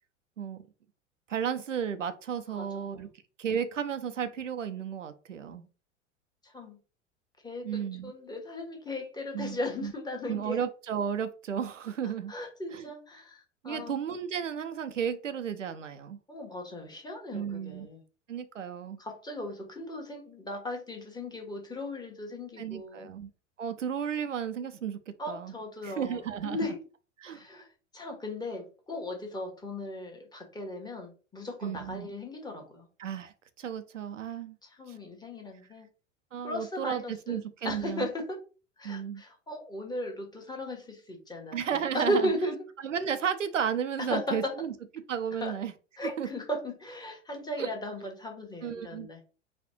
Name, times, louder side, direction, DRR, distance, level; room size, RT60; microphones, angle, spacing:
voice 1, 0.4-0.7 1.3-3.1 3.4-5.7 7.6-8.1 9.3-9.9 10.3-12.3 12.7-12.9 13.6-16.2 17.3-17.9 18.3-19.0 22.6-23.3 23.6-25.5 25.8-26.6 27.2-27.4 31.6-32.1 33.0-34.6 34.9-35.0 36.3-38.1 38.8-39.2 41.5-42.3 42.8-44.7 45.1-45.7 46.0-46.3 47.6-47.7 48.6-49.1, right 8 dB, 80° right, 0.6 m, -33 dB
voice 2, 2.5-3.0 6.4-6.8 7.4-10.6 12.3-14.0 16.3-18.0 19.0-23.1 25.2-26.8 27.3-27.7 27.9-32.9 34.6-35.9 36.4-37.4 37.6-38.4 38.8-42.6 44.1-44.5 45.4-45.6 46.0-49.2, left 1 dB, 10° left, 1.3 m, -36 dB
4.2 x 2.4 x 4.4 m
figure-of-eight pair, 85°, 37 cm